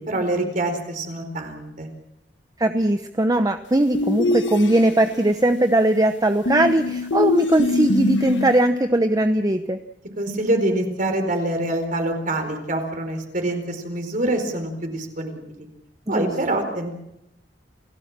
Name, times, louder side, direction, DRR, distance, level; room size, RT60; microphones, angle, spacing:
voice 1, 0.0-1.9 10.2-15.7 16.1-16.9, right 1 dB, 45° right, 5 dB, 4.4 m, -25 dB
voice 2, 2.6-9.8 16.1-16.6, right 1 dB, 20° right, 8 dB, 0.8 m, -20 dB
sound 1, 3.9-5.2 6.5-8.7, left 3 dB, 85° left, 1.4 m, -23 dB
28.5 x 17.5 x 7.5 m, 0.85 s
head